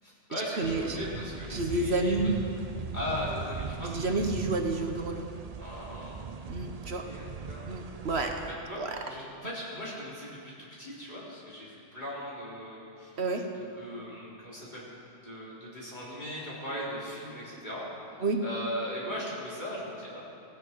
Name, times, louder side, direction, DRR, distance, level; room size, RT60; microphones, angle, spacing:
voice 1, 0.0-2.3 2.9-4.1 5.6-6.2 7.0-7.7 8.7-10.5 10.8-13.1 13.5-14.8 15.2-17.9 18.4-20.2, left 1 dB, 40° left, -8 dB, 4.5 m, -38 dB
sound 1, 0.6-8.5, right 5 dB, 40° right, 0.6 m, -40 dB
voice 2, 0.6-1.1 1.5-2.4 3.8-5.3 6.5-7.1 7.7-8.4 8.8-9.0 13.2-13.5 18.2-18.4, right 2 dB, 65° right, 4 dB, 1.4 m, -29 dB
17.5 x 17.0 x 4.7 m, 2.6 s
omnidirectional pair, 1.2 m